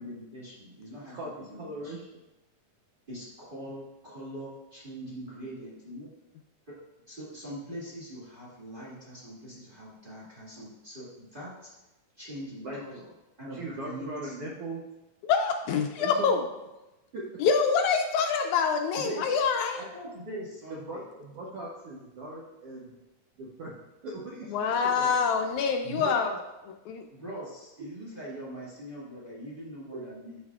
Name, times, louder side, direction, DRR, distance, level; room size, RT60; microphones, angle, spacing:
voice 1, 0.0-1.2 1.5-1.9 3.1-6.1 6.7-6.8 7.1-11.7 12.2-13.1 13.4-14.3 18.9-19.2 19.7-21.0 25.8-26.2 27.1-30.4, equal, 25° right, -7 dB, 1.2 m, -42 dB
voice 2, 1.0-2.2 12.6-12.8 13.5-14.8 16.0-16.5 17.1-17.2 20.7-22.9 23.4-23.7 24.0-25.2, right 2 dB, 70° right, -4 dB, 1.4 m, -39 dB
voice 3, 15.2-16.4 17.4-19.8 24.5-26.3 26.7-27.0, left 6 dB, 80° left, 4 dB, 1.8 m, -26 dB
12.0 x 4.8 x 2.4 m, 1.0 s
omnidirectional pair, 3.6 m